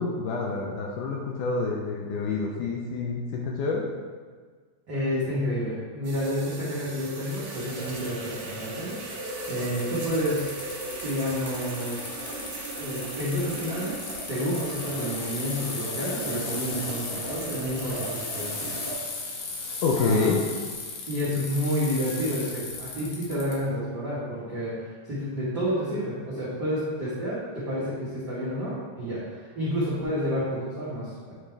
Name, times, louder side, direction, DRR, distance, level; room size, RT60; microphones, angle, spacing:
voice 1, 0.0-3.9 19.8-20.4, left 4 dB, 80° left, -1 dB, 1.9 m, -27 dB
voice 2, 4.9-10.5 11.0-12.1 12.8-14.0 14.3-18.8 20.0-20.3 21.1-31.3, equal, 85° right, -10 dB, 0.9 m, -30 dB
sound 1, 6.0-18.9, right 2 dB, 60° right, 1.4 m, -37 dB
Bicycle, 9.4-23.6, left 3 dB, 60° left, 1.9 m, -36 dB
8.4 x 3.6 x 3.3 m, 1.5 s
omnidirectional pair, 4.1 m